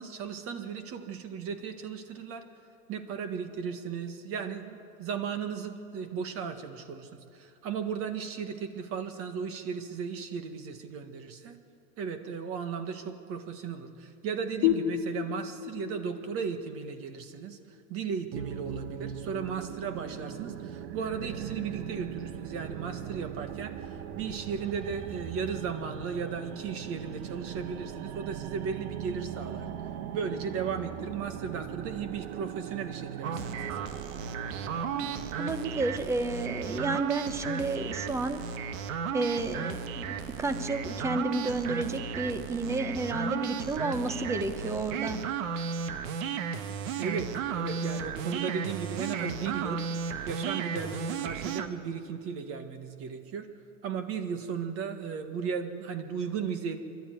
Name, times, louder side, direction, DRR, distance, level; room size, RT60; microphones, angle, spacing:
voice 1, 0.0-2.5 2.9-11.6 12.0-17.6 17.9-29.7 30.1-33.5 47.0-49.8 50.2-53.5 53.8-56.8, right 6 dB, 35° right, 8 dB, 1.7 m, -35 dB
sound 1, 14.6-18.0, left 12 dB, 45° left, 1.6 m, -32 dB
sound 2, 18.3-35.8, right 9 dB, 50° right, 1.2 m, -40 dB
sound 3, 33.2-51.7, right 6 dB, 70° right, 1.5 m, -34 dB
voice 2, 34.9-38.4 39.1-45.2, right 2 dB, 5° right, 9 dB, 0.7 m, -31 dB
26.0 x 12.5 x 9.3 m, 2.5 s
supercardioid pair, 155°, 42 cm